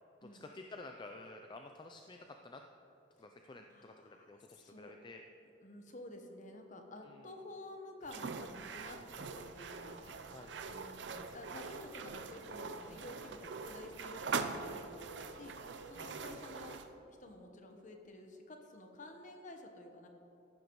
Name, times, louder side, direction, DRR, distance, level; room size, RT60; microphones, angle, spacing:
voice 1, 0.2-2.6 3.2-5.2 7.0-7.3 10.3-10.6 12.8-13.1 15.9-16.4, left 2 dB, 25° left, 4 dB, 0.4 m, -52 dB
voice 2, 3.6-4.9 5.6-10.3 10.7-15.6 15.9-16.8 17.2-20.1, left 1 dB, 40° left, 4 dB, 1.1 m, -51 dB
sound 1, 8.0-16.9, right 4 dB, 65° right, 0.5 m, -43 dB
14.5 x 11.5 x 3.1 m, 3.0 s
head